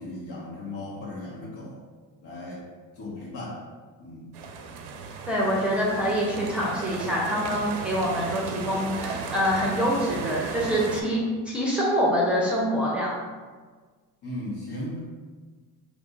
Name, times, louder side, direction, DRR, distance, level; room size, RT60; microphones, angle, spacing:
voice 1, 0.0-1.8 2.2-2.7 3.0-3.6 4.0-4.3 14.2-15.0, left 1 dB, 65° left, -6 dB, 1.5 m, -36 dB
sound 1, 4.3-11.0, right 5 dB, 65° right, 0.6 m, -35 dB
voice 2, 5.3-13.1, equal, 5° right, -6 dB, 0.7 m, -25 dB
3.7 x 2.6 x 2.4 m, 1.4 s
supercardioid pair, 80°, 43 cm